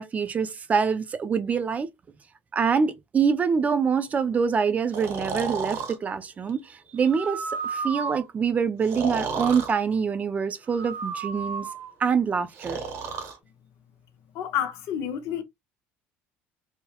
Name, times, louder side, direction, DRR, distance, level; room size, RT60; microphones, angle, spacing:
voice 1, 0.0-1.9 2.5-11.7 12.0-12.8, right 6 dB, 30° right, 0.3 m, -25 dB
Breathing, 4.9-6.0 7.0-8.3 8.8-9.7 10.7-11.9 12.6-13.4, right 5 dB, 60° right, 0.7 m, -32 dB
voice 2, 14.3-15.4, left 9 dB, 70° left, 0.5 m, -29 dB
2.8 x 2.0 x 2.3 m
supercardioid pair, 95°, 5 cm